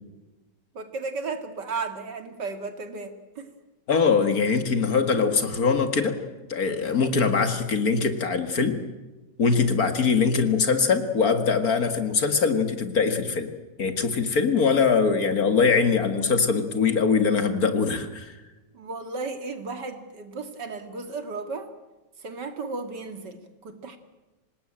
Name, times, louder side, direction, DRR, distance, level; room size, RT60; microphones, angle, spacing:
voice 1, 0.7-3.5 18.7-21.7 22.2-24.0, right 4 dB, 70° right, 8 dB, 2.7 m, -34 dB
voice 2, 3.9-6.2 6.5-8.8 9.4-13.5 13.8-18.3, left 5 dB, 55° left, 8 dB, 2.3 m, -22 dB
26.0 x 19.5 x 8.9 m, 1.1 s
omnidirectional pair, 1.9 m